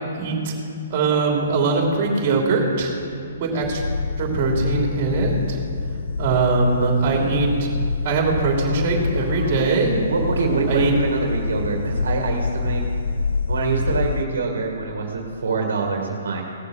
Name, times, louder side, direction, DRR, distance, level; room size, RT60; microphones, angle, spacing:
voice 1, 0.1-0.5 0.9-3.0 3.4-3.8 4.2-5.6 6.2-7.7 8.0-10.0 10.7-10.9, right 4 dB, 40° right, 0 dB, 3.3 m, -21 dB
sound 1, 3.6-14.2, left 4 dB, 85° left, 0.6 m, -26 dB
voice 2, 8.6-12.8 13.5-16.4, right 4 dB, 80° right, 1 dB, 1.9 m, -26 dB
17.5 x 6.8 x 6.4 m, 2.5 s
hypercardioid pair, 150°, 0 cm